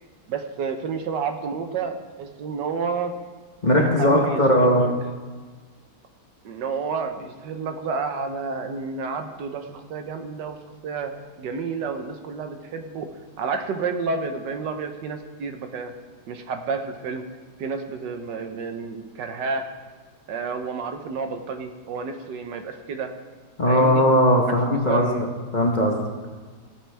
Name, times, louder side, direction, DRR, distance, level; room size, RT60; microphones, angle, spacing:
voice 1, 0.3-3.2 3.8-4.9 6.4-10.6 10.8-13.1 13.4-15.9 16.3-17.2 17.6-19.6 20.3-23.1 23.7-24.1 24.7-25.3, right 5 dB, 85° right, 6 dB, 1.5 m, -30 dB
voice 2, 3.6-4.8 23.6-25.3 25.5-25.9, equal, 30° left, 0 dB, 1.0 m, -19 dB
17.0 x 7.6 x 3.4 m, 1.4 s
omnidirectional pair, 1.8 m